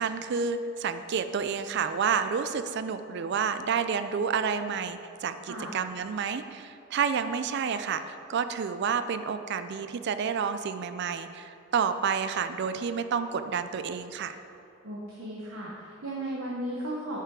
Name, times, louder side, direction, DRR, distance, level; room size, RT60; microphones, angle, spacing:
voice 1, 0.0-14.4, right 6 dB, 55° right, 10 dB, 0.4 m, -30 dB
voice 2, 14.8-17.2, right 1 dB, 85° right, -4 dB, 1.0 m, -35 dB
7.4 x 5.7 x 4.7 m, 2.6 s
head